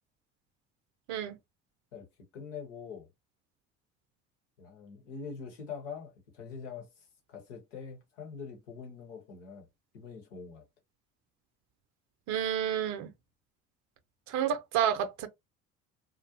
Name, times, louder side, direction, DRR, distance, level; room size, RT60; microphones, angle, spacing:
voice 1, 2.3-3.1 4.6-9.7 9.9-10.6, left 5 dB, 90° left, 0.9 m, -44 dB
voice 2, 12.3-13.1 14.3-15.3, right 9 dB, 55° right, 0.6 m, -30 dB
2.4 x 2.0 x 2.7 m
hypercardioid pair, 65°, 35 cm